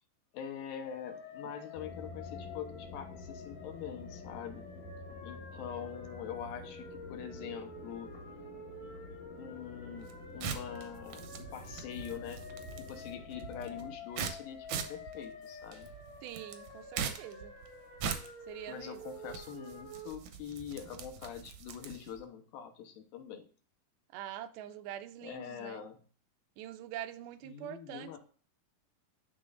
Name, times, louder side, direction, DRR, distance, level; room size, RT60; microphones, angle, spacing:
voice 1, 0.3-4.7 5.2-8.1 9.3-12.5 12.8-16.0 18.7-23.4 25.2-26.0 27.4-28.2, left 8 dB, 80° left, 2.7 m, -44 dB
sound 1, 0.8-20.1, left 2 dB, 45° left, 1.8 m, -49 dB
sound 2, 1.7-14.0, left 4 dB, 65° left, 2.9 m, -49 dB
sound 3, 10.0-22.2, right 7 dB, 75° right, 1.8 m, -42 dB
voice 2, 16.2-17.5 18.5-19.0 24.1-25.8 26.6-28.2, right 12 dB, 90° right, 2.5 m, -44 dB
11.5 x 3.9 x 2.5 m
omnidirectional pair, 4.2 m